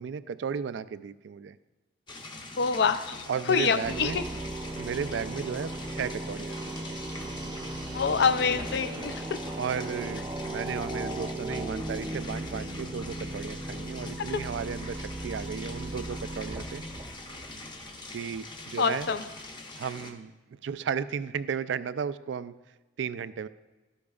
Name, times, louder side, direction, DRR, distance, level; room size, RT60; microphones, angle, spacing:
voice 1, 0.0-1.6 3.3-4.2 4.8-6.8 9.6-16.8 18.1-19.1 19.8-20.3 20.6-22.5 23.0-23.5, right 7 dB, 75° right, 15 dB, 0.3 m, -34 dB
sound 1, 2.1-20.1, left 2 dB, 25° left, 0.8 m, -44 dB
voice 2, 2.6-4.2 7.9-9.4 14.2-14.4 18.8-19.2, left 5 dB, 65° left, 11 dB, 0.5 m, -26 dB
sound 2, 3.8-17.9, right 1 dB, 25° right, 0.7 m, -37 dB
12.0 x 9.9 x 2.4 m, 1.2 s
head